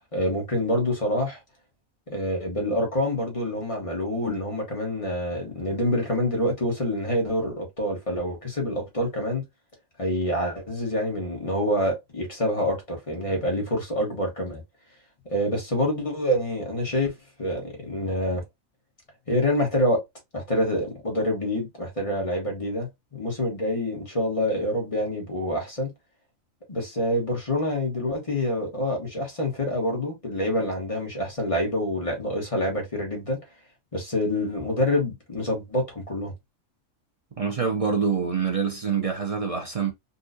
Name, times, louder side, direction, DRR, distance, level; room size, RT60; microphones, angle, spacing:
voice 1, 0.1-1.4 2.1-9.4 10.0-14.6 15.3-18.4 19.3-20.0 20.3-25.9 26.7-33.4 33.9-36.3, left 1 dB, 25° left, 1.2 m, -26 dB
voice 2, 37.4-39.9, right 6 dB, 60° right, 0.3 m, -25 dB
4.1 x 2.4 x 2.6 m
omnidirectional pair, 1.4 m